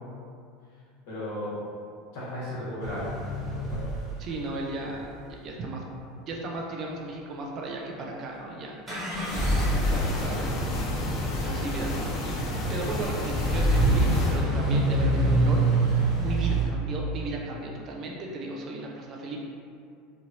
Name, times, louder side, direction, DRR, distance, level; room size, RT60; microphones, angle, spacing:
voice 1, 1.1-1.6 2.1-3.1 3.5-3.9 9.0-9.2, left 1 dB, 70° left, -8 dB, 1.4 m, -35 dB
sound 1, 2.8-5.1 8.9-16.7, right 1 dB, 10° right, 1.0 m, -26 dB
voice 2, 4.2-5.8 6.3-8.8 9.9-10.7 11.4-11.9 12.2-12.4 12.7-15.9 16.2-19.4, right 2 dB, 35° right, -1 dB, 0.4 m, -35 dB
sound 2, 9.2-14.4, left 1 dB, 40° left, 0.4 m, -32 dB
3.0 x 2.6 x 2.9 m, 2.4 s
supercardioid pair, 155°, 0 cm